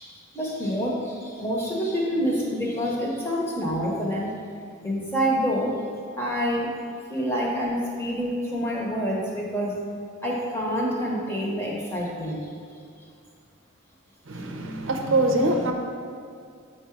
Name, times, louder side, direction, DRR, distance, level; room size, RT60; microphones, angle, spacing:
voice 1, 0.0-4.3 4.8-5.8 6.2-6.7 7.1-9.8 10.2-12.5, equal, 10° left, -3 dB, 1.0 m, -27 dB
voice 2, 14.3-15.7, right 2 dB, 70° right, 3 dB, 0.7 m, -23 dB
8.0 x 4.8 x 4.6 m, 2.3 s
head